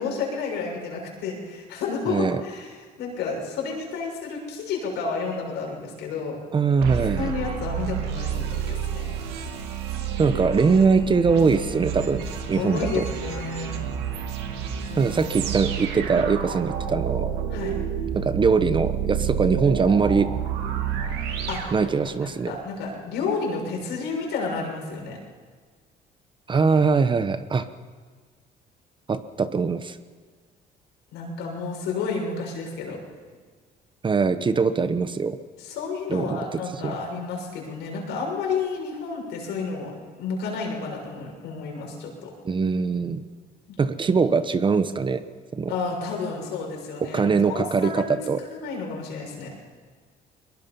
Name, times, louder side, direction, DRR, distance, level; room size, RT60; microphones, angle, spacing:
voice 1, 0.0-6.4 7.2-9.1 12.6-13.7 14.9-15.1 17.5-17.7 21.5-25.2 31.1-33.0 35.6-42.3 43.7-43.8 45.7-48.1 48.4-49.5, left 4 dB, 85° left, 0 dB, 6.7 m, -31 dB
voice 2, 2.1-2.4 6.5-7.3 10.2-13.1 15.0-17.3 18.1-20.3 21.7-22.5 26.5-27.7 29.1-30.0 34.0-35.4 36.1-36.4 36.8-36.9 42.4-43.2 43.8-45.2 45.5-45.7 47.1-48.4, right 5 dB, 30° right, 11 dB, 1.0 m, -22 dB
sound 1, 6.8-22.4, right 8 dB, 85° right, 2.2 m, -30 dB
22.0 x 21.5 x 5.5 m, 1.5 s
cardioid pair, 110°, 17 cm